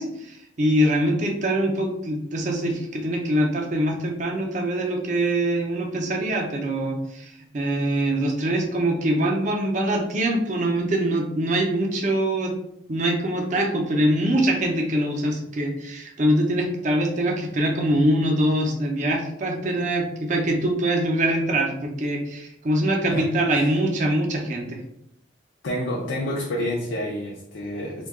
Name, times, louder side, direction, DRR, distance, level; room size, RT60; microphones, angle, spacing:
voice 1, 0.0-12.5 12.9-24.8, right 1 dB, 40° right, 1 dB, 0.5 m, -23 dB
voice 2, 25.6-28.1, left 1 dB, 75° left, -2 dB, 0.5 m, -28 dB
2.7 x 2.2 x 3.6 m, 0.76 s
head